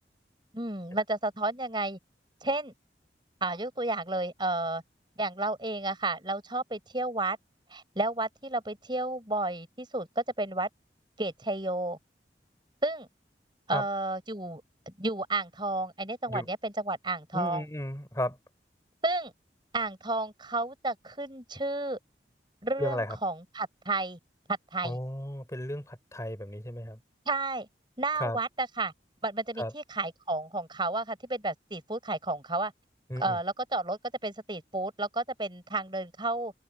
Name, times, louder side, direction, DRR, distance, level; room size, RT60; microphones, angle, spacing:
voice 1, 0.5-2.0 2.4-2.7 3.4-4.8 5.2-7.4 7.7-10.7 11.2-12.0 12.8-13.1 13.7-17.7 19.0-19.3 19.7-22.0 22.6-24.2 24.7-25.0 27.3-27.7 28.0-28.9 29.2-32.7 33.2-36.5, right 2 dB, 25° right, 7.0 m, -32 dB
voice 2, 17.3-18.4 22.8-23.2 24.8-27.0 28.2-28.4 29.6-29.7 33.1-33.4, left 1 dB, 15° left, 5.7 m, -34 dB
head